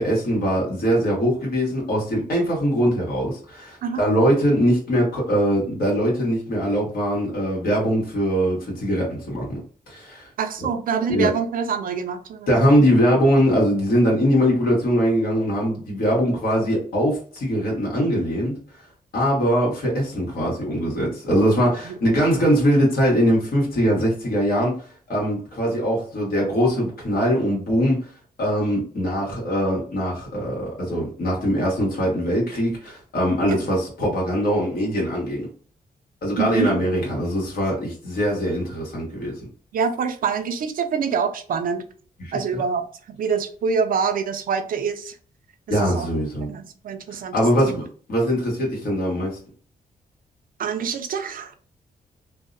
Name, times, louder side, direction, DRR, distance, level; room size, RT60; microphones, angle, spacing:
voice 1, 0.0-9.5 9.9-10.3 10.6-10.7 11.1-11.3 12.5-18.6 19.1-24.8 25.1-28.1 28.4-35.5 36.2-39.4 42.2-42.6 45.7-46.5 47.1-47.8 48.1-49.4, equal, 70° left, -3 dB, 1.3 m, -22 dB
voice 2, 10.4-12.5 21.6-21.9 33.4-33.6 36.4-36.8 39.7-41.8 42.3-45.2 45.7-46.1 46.5-47.7 50.6-51.5, right 6 dB, 65° right, 7 dB, 0.4 m, -26 dB
2.7 x 2.0 x 2.5 m, 0.43 s
wide cardioid pair, 125°, 16 cm